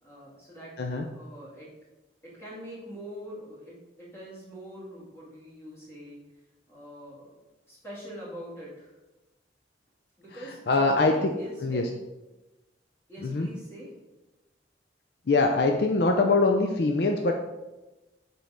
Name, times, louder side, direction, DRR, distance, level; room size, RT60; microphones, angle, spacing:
voice 1, 0.0-1.7 2.2-6.2 6.7-7.4 7.7-8.9 10.2-12.0 13.1-13.9, equal, 15° left, -8 dB, 2.3 m, -44 dB
voice 2, 10.4-11.3 11.6-11.9 13.2-13.5 15.3-17.3, left 3 dB, 60° left, 3 dB, 0.5 m, -23 dB
5.3 x 4.5 x 5.0 m, 1.1 s
head